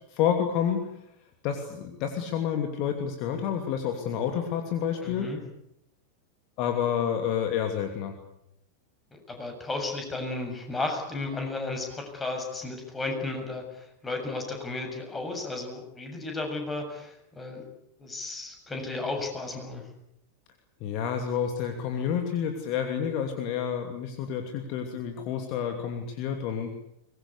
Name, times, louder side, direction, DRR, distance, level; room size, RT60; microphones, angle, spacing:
voice 1, 0.1-0.9 1.4-5.3 6.6-8.2 20.8-26.7, left 8 dB, 40° left, 5 dB, 2.8 m, -29 dB
voice 2, 5.0-5.4 9.1-17.6 18.0-19.9, left 2 dB, 15° left, 4 dB, 7.2 m, -34 dB
23.5 x 21.0 x 8.4 m, 0.77 s
figure-of-eight pair, 90°, 0 cm